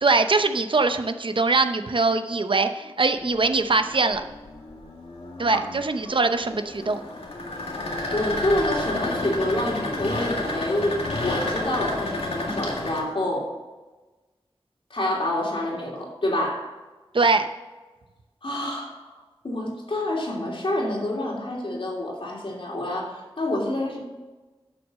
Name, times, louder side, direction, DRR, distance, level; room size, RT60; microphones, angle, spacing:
voice 1, 0.0-4.2 5.4-7.0 17.1-17.5, right 3 dB, 60° right, 8 dB, 0.7 m, -22 dB
sound 1, 3.2-13.0, left 2 dB, 90° left, 1.9 m, -31 dB
voice 2, 8.1-13.5 14.9-16.7 18.4-19.2 19.4-24.0, left 1 dB, 65° left, -2 dB, 2.9 m, -27 dB
11.0 x 6.3 x 6.3 m, 1.2 s
wide cardioid pair, 80°, 10 cm